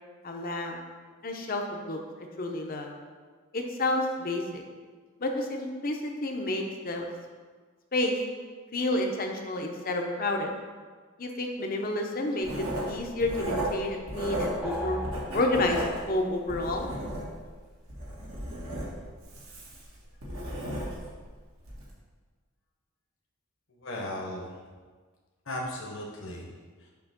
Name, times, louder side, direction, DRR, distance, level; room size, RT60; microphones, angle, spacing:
voice 1, 0.2-0.8 1.2-2.9 3.5-4.6 5.2-7.1 7.9-8.2 8.7-10.5 11.2-15.0 15.3-16.9, left 2 dB, 45° left, 3 dB, 0.7 m, -30 dB
Writing, 12.4-14.7 15.0-17.5 17.9-21.2 21.6-21.8, right 1 dB, 75° right, 1.7 m, -34 dB
sound 1, 14.6-16.1, left 1 dB, 5° right, 0.8 m, -37 dB
voice 2, 23.7-24.5 25.4-26.5 26.8-26.9, left 1 dB, 60° left, -2 dB, 1.0 m, -37 dB
6.9 x 3.0 x 5.8 m, 1.5 s
head